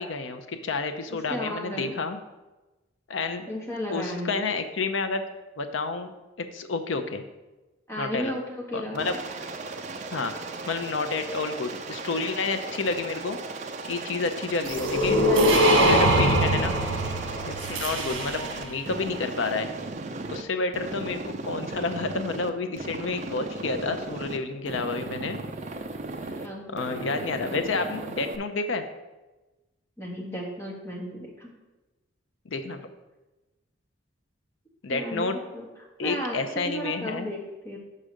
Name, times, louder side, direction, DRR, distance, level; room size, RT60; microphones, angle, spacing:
voice 1, 0.0-2.2 3.1-3.5 3.9-5.2 5.6-6.1 6.4-7.2 8.0-8.3 8.7-9.2 10.1-10.3 10.7-13.4 13.8-16.7 17.5-19.7 20.3-25.4 26.7-28.8 32.5-32.8 34.8-35.4 36.0-37.3, left 3 dB, 75° left, 8 dB, 0.6 m, -30 dB
voice 2, 1.3-1.9 3.5-4.5 7.9-9.2 15.2-15.9 26.4-26.6 30.0-31.5 34.9-35.7 36.0-37.8, equal, 15° left, -3 dB, 1.4 m, -34 dB
Aircraft, 8.9-20.4 20.7-22.5 22.8-24.4 24.7-26.5 26.8-28.4, right 3 dB, 35° right, 0.4 m, -37 dB
sound 1, 14.7-18.7, right 1 dB, 70° right, 1.2 m, -22 dB
5.5 x 5.0 x 6.3 m, 1.1 s
head